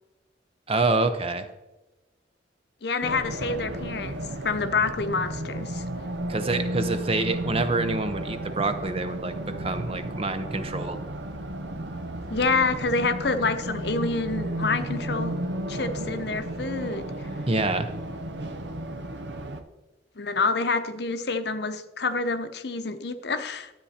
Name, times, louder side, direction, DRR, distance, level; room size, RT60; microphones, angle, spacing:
voice 1, 0.7-1.5 6.3-11.1 17.5-17.9, right 3 dB, 30° right, 9 dB, 0.7 m, -27 dB
voice 2, 2.8-4.2 4.4-5.8 12.3-15.4 15.7-17.0 20.2-23.7, left 4 dB, 60° left, 10 dB, 0.8 m, -27 dB
Race car auto racing, 3.0-19.6, right 1 dB, 65° right, 0.9 m, -33 dB
13.0 x 8.2 x 4.3 m, 1.1 s
head